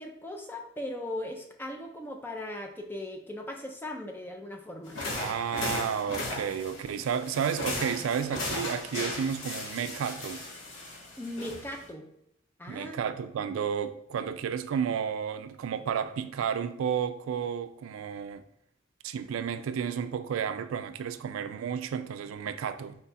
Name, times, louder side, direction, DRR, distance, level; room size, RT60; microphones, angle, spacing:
voice 1, 0.0-5.0 11.2-12.1 12.6-13.0, left 1 dB, 10° left, 0.4 m, -38 dB
sound 1, 4.9-11.9, left 2 dB, 75° left, 1.1 m, -36 dB
voice 2, 5.1-10.4 12.7-18.4 19.0-23.0, right 7 dB, 85° right, 0.3 m, -32 dB
4.4 x 2.3 x 4.0 m
head